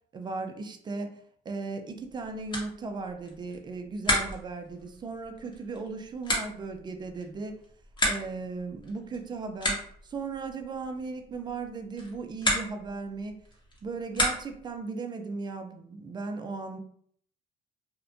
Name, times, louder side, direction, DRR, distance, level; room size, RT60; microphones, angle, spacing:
voice 1, 0.1-1.2 1.5-7.6 8.1-13.4 13.8-16.8, right 4 dB, 25° right, 6 dB, 0.4 m, -37 dB
sound 1, 1.9-14.8, left 1 dB, 25° left, 0.8 m, -34 dB
2.5 x 2.1 x 2.4 m, 0.63 s
cardioid pair, 110°, 17 cm